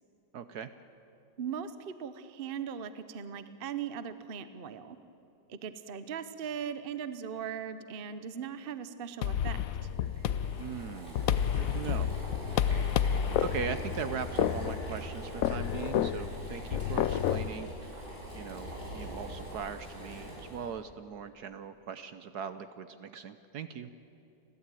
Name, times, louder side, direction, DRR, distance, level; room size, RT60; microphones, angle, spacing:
voice 1, 0.3-0.7 10.6-11.2 11.5-12.1 13.4-17.9 18.3-23.9, right 7 dB, 65° right, 11 dB, 1.1 m, -40 dB
voice 2, 1.4-5.0 5.5-9.6, right 7 dB, 45° right, 11 dB, 0.7 m, -39 dB
sound 1, 9.2-17.5, left 9 dB, 80° left, 0.7 m, -30 dB
Boiling, 9.4-20.7, equal, 25° right, 6.0 m, -42 dB
29.5 x 12.5 x 9.1 m, 2.8 s
omnidirectional pair, 2.1 m